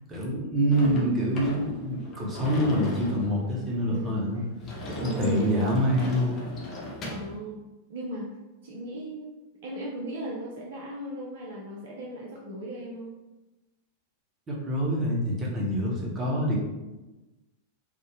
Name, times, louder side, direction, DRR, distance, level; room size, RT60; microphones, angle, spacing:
voice 1, 0.1-4.4 5.0-6.4 14.5-16.6, equal, 20° right, -4 dB, 0.9 m, -26 dB
Sliding door / Slam, 0.7-7.4, equal, 30° left, 0.6 m, -38 dB
voice 2, 0.8-1.3 3.9-4.4 4.8-5.7 7.0-7.6 7.9-8.3 8.6-13.1, right 2 dB, 55° right, -2 dB, 0.5 m, -37 dB
3.5 x 2.1 x 3.3 m, 1.1 s
figure-of-eight pair, 90°, 0 cm